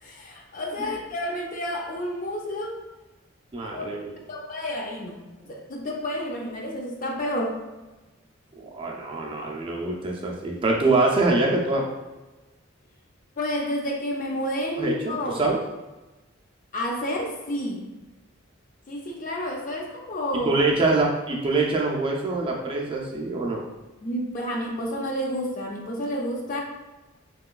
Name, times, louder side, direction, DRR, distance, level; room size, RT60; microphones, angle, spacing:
voice 1, 0.0-2.8 3.7-3.9 4.3-7.6 13.4-15.4 16.7-17.9 18.9-20.5 24.0-26.6, equal, 45° left, 0 dB, 0.5 m, -30 dB
voice 2, 3.5-4.1 8.6-11.8 14.8-15.6 20.4-23.6, right 3 dB, 25° right, -2 dB, 0.4 m, -24 dB
3.1 x 2.9 x 2.3 m, 1.1 s
head